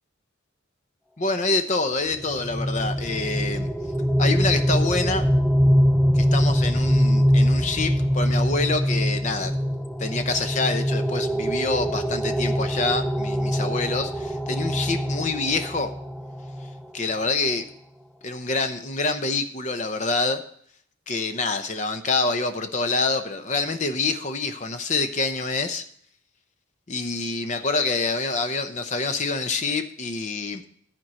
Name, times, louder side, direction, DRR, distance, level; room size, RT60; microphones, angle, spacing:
voice 1, 1.2-3.7 4.2-5.3 6.1-9.5 10.0-15.9 16.9-17.6 18.2-20.4 21.1-25.8 26.9-30.7, left 3 dB, 35° left, 8 dB, 0.7 m, -26 dB
sound 1, 2.1-16.8, equal, ahead, 0.3 m, -23 dB
11.5 x 4.5 x 7.5 m, 0.65 s
head